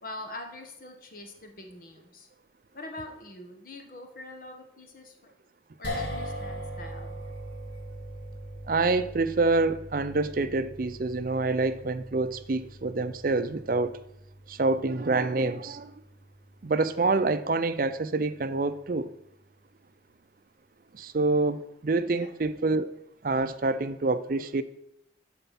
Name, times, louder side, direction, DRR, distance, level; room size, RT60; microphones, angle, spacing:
voice 1, 0.0-2.3 2.7-5.3 5.8-7.2 22.0-22.3, left 2 dB, 50° left, 1.4 m, -44 dB
sound 1, 5.8-18.2, equal, 75° left, 2.6 m, -41 dB
voice 2, 8.7-14.0 14.5-15.9 16.6-19.1 20.9-22.9 23.2-24.6, right 3 dB, 50° right, 0.5 m, -27 dB
12.5 x 4.4 x 5.8 m
head